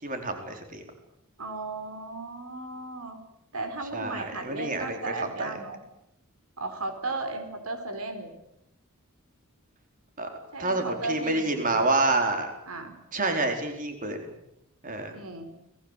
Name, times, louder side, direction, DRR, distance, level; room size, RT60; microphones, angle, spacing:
voice 1, 0.0-0.8 3.9-5.6 10.2-10.3 10.6-12.5 13.1-14.3 14.8-15.2, right 2 dB, 40° right, 5 dB, 4.5 m, -28 dB
voice 2, 1.4-3.2 3.5-5.8 6.6-8.3 10.5-11.8 12.7-12.9 15.1-15.5, right 2 dB, 85° right, 7 dB, 4.3 m, -35 dB
30.0 x 20.5 x 8.4 m, 0.79 s
head